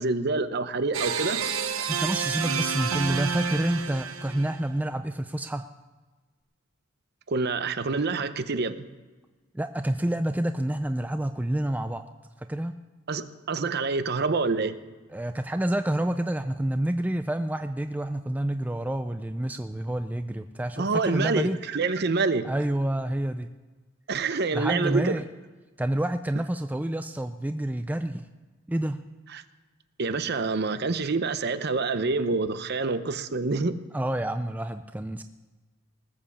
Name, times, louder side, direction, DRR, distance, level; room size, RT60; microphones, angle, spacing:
voice 1, 0.0-1.4 7.3-8.9 13.1-14.7 20.8-22.5 24.1-25.2 29.3-29.4 30.0-33.8, right 3 dB, 50° right, 12 dB, 0.7 m, -27 dB
sound 1, 0.9-4.6, right 6 dB, 70° right, 1.0 m, -29 dB
voice 2, 1.8-5.7 9.5-12.1 12.4-12.7 15.1-21.6 22.4-23.5 24.5-25.2 25.8-28.2 28.7-29.0 33.9-35.2, right 1 dB, 10° right, 8 dB, 0.3 m, -28 dB
19.0 x 7.4 x 7.0 m, 1.3 s
head